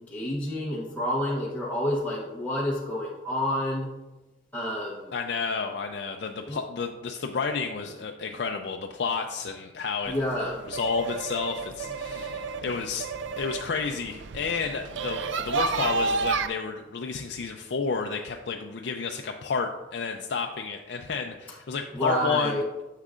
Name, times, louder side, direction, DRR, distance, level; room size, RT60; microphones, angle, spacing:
voice 1, 0.0-3.9 4.5-5.1 6.5-6.6 10.1-10.6 21.9-22.6, equal, 10° left, -6 dB, 0.8 m, -29 dB
voice 2, 5.1-10.1 10.4-13.1 13.4-22.6, left 5 dB, 60° left, 3 dB, 0.4 m, -31 dB
sound 1, 10.0-16.5, right 4 dB, 80° right, 0.4 m, -31 dB
9.7 x 6.5 x 2.4 m, 1.1 s
head